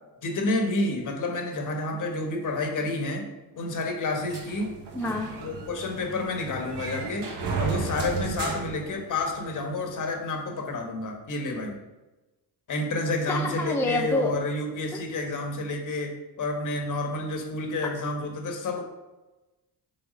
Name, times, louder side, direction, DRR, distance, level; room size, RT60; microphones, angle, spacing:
voice 1, 0.2-3.3 3.5-4.7 5.4-7.3 7.6-11.8 12.7-18.8, left 2 dB, 50° left, 2 dB, 1.4 m, -29 dB
sound 1, 4.3-9.6, right 5 dB, 80° right, 1.4 m, -34 dB
voice 2, 4.9-5.3 13.3-14.4 14.9-15.0 17.8-17.9, left 1 dB, 5° left, 2 dB, 0.5 m, -28 dB
6.6 x 4.1 x 5.2 m, 1.1 s
cardioid pair, 130°, 40 cm